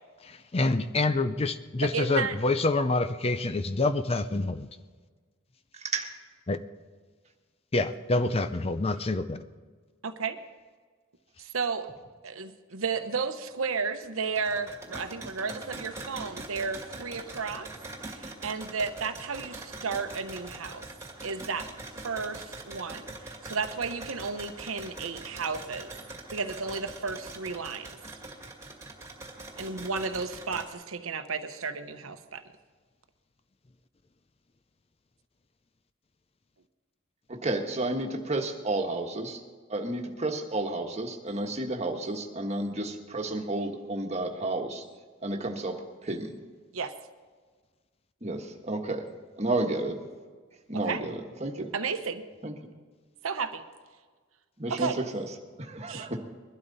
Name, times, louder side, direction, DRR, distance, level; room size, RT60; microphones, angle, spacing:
voice 1, 0.2-4.7 6.5-6.6 7.7-9.4, left 2 dB, 30° left, 11 dB, 0.5 m, -27 dB
voice 2, 1.8-2.3 10.0-10.3 11.4-11.9 12.2-17.7 18.1-20.9 21.2-21.6 22.0-23.1 23.4-25.9 26.3-27.9 29.6-32.4 46.7-46.9 50.9-51.0 51.7-52.2 53.2-53.6 54.7-55.0 55.9-56.1, right 5 dB, 80° right, 8 dB, 0.9 m, -33 dB
voice 3, 5.8-6.1 37.3-39.4 39.7-44.8 45.2-46.3 48.2-49.1 49.4-50.0 50.7-51.1 51.4-51.7 52.4-52.5 54.6-55.2 55.6-56.2, right 2 dB, 30° right, 2 dB, 1.4 m, -31 dB
sound 1, 14.0-30.7, right 2 dB, 15° right, 2.1 m, -43 dB
21.5 x 12.0 x 4.1 m, 1.5 s
head